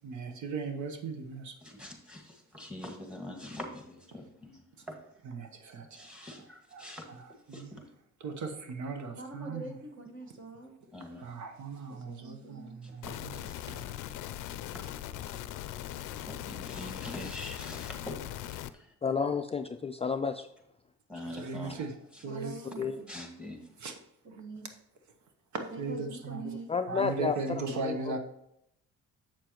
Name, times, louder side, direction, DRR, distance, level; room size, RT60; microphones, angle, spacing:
voice 1, 0.0-1.5 5.3-6.1 6.7-7.8 8.2-9.6 11.2-13.3 13.7-13.8 21.3-22.0 22.2-22.5 23.8-24.0 25.8-26.4 26.9-28.2, right 4 dB, 70° right, 6 dB, 1.0 m, -38 dB
voice 2, 1.6-5.0 5.9-7.1 7.5-7.8 10.9-11.3 12.8-12.9 13.3-13.6 14.5-14.9 15.7-15.9 16.2-18.2 18.5-18.9 21.1-21.8 22.1-22.2 23.1-23.6, left 1 dB, 5° right, 1 dB, 1.8 m, -44 dB
voice 3, 9.1-10.7 11.9-12.8 22.3-23.1 24.2-24.7 25.5-26.7, right 2 dB, 40° right, 3 dB, 1.5 m, -44 dB
sound 1, 13.0-18.7, left 12 dB, 90° left, 0.5 m, -40 dB
voice 4, 19.0-20.5 22.8-23.0 26.7-28.2, left 5 dB, 20° left, 7 dB, 0.3 m, -31 dB
7.4 x 6.8 x 3.0 m, 0.78 s
cardioid pair, 90°, 30 cm